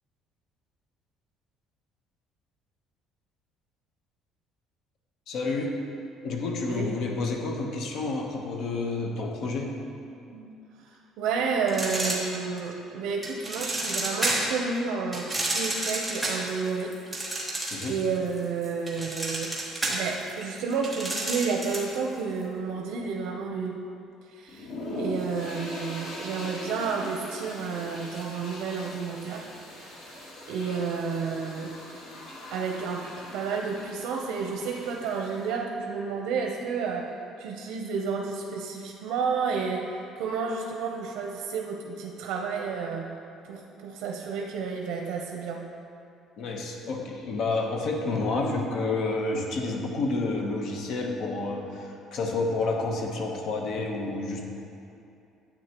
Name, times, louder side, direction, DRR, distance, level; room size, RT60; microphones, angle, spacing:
voice 1, 5.3-5.8 6.2-9.8 17.7-18.0 46.4-54.4, left 3 dB, 55° left, 1 dB, 1.0 m, -29 dB
voice 2, 10.8-16.9 17.2-17.5 17.9-19.6 19.9-23.8 24.3-24.7 25.0-30.0 30.5-31.8 32.5-43.2 43.4-45.7, right 5 dB, 85° right, 1 dB, 0.7 m, -31 dB
sound 1, 11.7-12.7 13.2-14.6 15.1-18.1 18.4-22.0, right 2 dB, 5° right, 1.2 m, -30 dB
sound 2, 24.5-35.5, left 1 dB, 70° left, 1.8 m, -41 dB
9.7 x 8.2 x 3.0 m, 2.7 s
cardioid pair, 160°, 0 cm